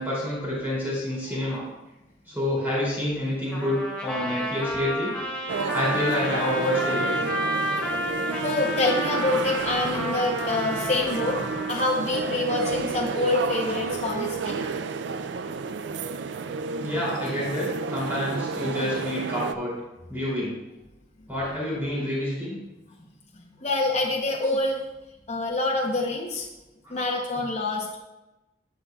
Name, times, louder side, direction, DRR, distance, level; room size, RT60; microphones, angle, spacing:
voice 1, 0.0-1.7 2.3-5.1 5.7-7.4 14.6-14.7 16.8-19.7 20.1-20.6 21.3-22.6 26.8-27.0, left 1 dB, 10° right, -8 dB, 2.9 m, -28 dB
Trumpet, 3.5-11.8, equal, 5° left, 1.3 m, -31 dB
sound 1, 5.5-19.5, right 4 dB, 80° right, 0.4 m, -31 dB
voice 2, 8.3-14.5 23.6-24.8 25.3-26.5 26.9-28.0, left 2 dB, 40° left, -2 dB, 0.9 m, -26 dB
12.0 x 6.7 x 2.4 m, 0.98 s
head